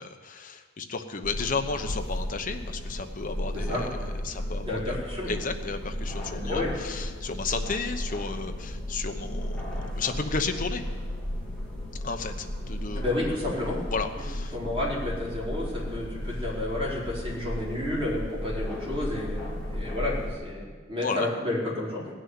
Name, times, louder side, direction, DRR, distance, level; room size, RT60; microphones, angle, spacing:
voice 1, 0.0-3.9 4.2-5.0 5.3-10.8 12.0-13.4 13.9-14.6 21.0-21.3, left 4 dB, 40° left, 6 dB, 0.9 m, -33 dB
sound 1, 1.2-20.3, equal, 5° left, 2.6 m, -34 dB
voice 2, 4.6-5.3 6.3-6.7 12.9-13.8 14.5-22.1, left 1 dB, 25° right, -7 dB, 4.6 m, -31 dB
18.0 x 6.3 x 9.4 m, 1.5 s
head